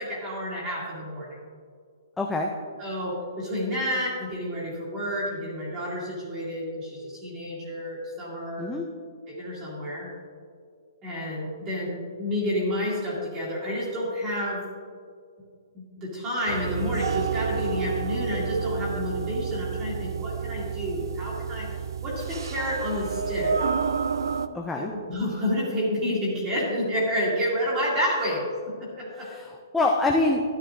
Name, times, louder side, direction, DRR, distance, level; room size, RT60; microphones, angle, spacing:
voice 1, 0.0-1.4 2.8-8.7 9.3-10.1 11.0-14.6 15.7-21.7 22.0-23.5 24.7-29.3, equal, 15° right, -5 dB, 2.3 m, -30 dB
voice 2, 2.2-2.5 8.6-8.9 24.5-24.9 29.2-30.4, left 2 dB, 5° left, 0 dB, 0.3 m, -25 dB
sound 1, 16.5-24.5, right 6 dB, 65° right, 0.5 m, -30 dB
12.5 x 11.0 x 2.5 m, 2.1 s
hypercardioid pair, 175°, 2 cm